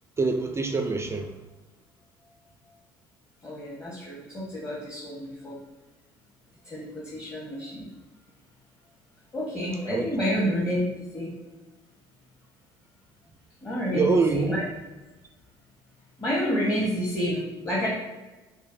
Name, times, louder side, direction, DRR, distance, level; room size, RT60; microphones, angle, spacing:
voice 1, 0.2-1.3 9.9-10.0 13.9-14.6, right 4 dB, 20° right, 6 dB, 0.3 m, -25 dB
voice 2, 3.4-5.6 6.6-7.9 9.3-10.8 11.1-11.3 13.6-14.6 16.2-17.9, equal, 25° left, -5 dB, 1.1 m, -29 dB
5.0 x 2.1 x 2.6 m, 1.1 s
hypercardioid pair, 70°, 12 cm